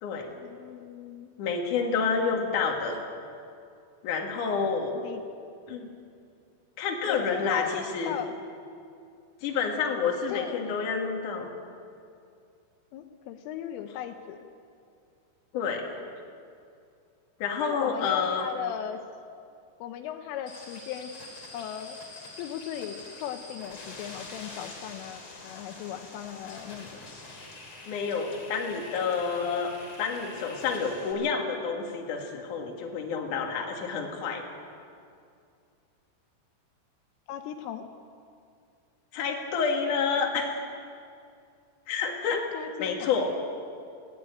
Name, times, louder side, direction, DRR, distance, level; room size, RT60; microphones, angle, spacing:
voice 1, 0.3-1.3 4.9-5.2 7.1-8.3 10.0-10.7 12.9-14.5 17.6-19.0 19.8-21.1 21.5-26.9 37.3-37.8 42.3-43.1, left 10 dB, 80° left, 7 dB, 3.3 m, -37 dB
voice 2, 1.4-3.0 4.0-5.0 5.7-5.8 6.8-8.1 9.4-11.5 15.5-16.0 17.4-18.4 27.8-29.7 30.0-34.4 39.1-40.6 41.9-42.4 42.8-43.3, left 5 dB, 50° left, 1 dB, 2.8 m, -29 dB
sound 1, 20.5-31.1, left 2 dB, 30° left, 3.2 m, -45 dB
21.0 x 15.0 x 9.0 m, 2.4 s
omnidirectional pair, 5.9 m